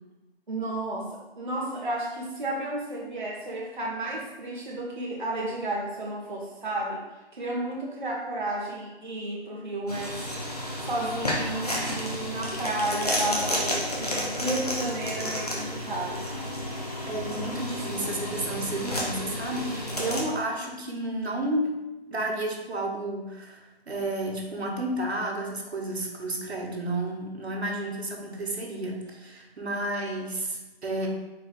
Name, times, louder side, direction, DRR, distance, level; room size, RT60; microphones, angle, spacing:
voice 1, 0.5-7.0 7.3-10.2 10.8-16.2, right 1 dB, 50° right, -4 dB, 0.6 m, -32 dB
sound 1, 9.9-20.2, left 1 dB, 35° left, 0.6 m, -31 dB
voice 2, 17.1-21.8 22.1-31.1, right 1 dB, 80° right, 1 dB, 1.0 m, -31 dB
4.1 x 2.3 x 4.0 m, 1.0 s
figure-of-eight pair, 175°, 32 cm